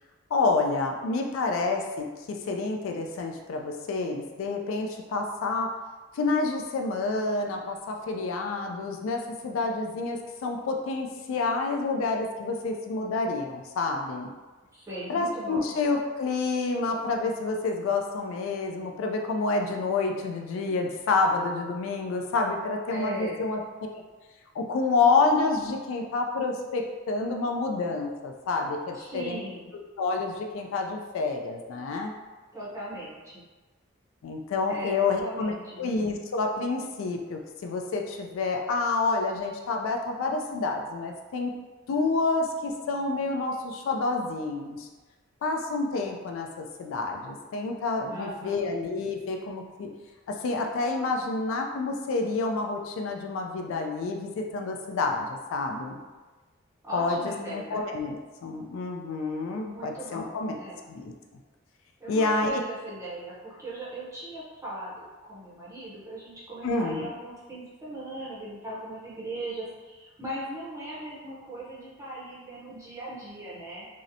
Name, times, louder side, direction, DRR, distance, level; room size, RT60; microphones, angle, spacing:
voice 1, 0.3-5.7 6.1-14.3 15.1-23.6 24.5-29.5 30.0-32.2 34.2-35.5 35.8-41.5 41.9-44.9 45.4-49.9 50.3-56.0 56.9-57.2 57.5-60.5 60.9-61.1 62.1-62.5 66.6-67.1, left 3 dB, 65° left, 2 dB, 0.3 m, -28 dB
voice 2, 14.7-15.7 22.9-23.5 28.9-29.7 32.5-33.5 34.7-35.9 48.1-48.6 56.8-57.8 59.7-60.9 62.0-73.9, right 1 dB, 15° right, -8 dB, 0.6 m, -39 dB
2.8 x 2.0 x 2.5 m, 1.3 s
head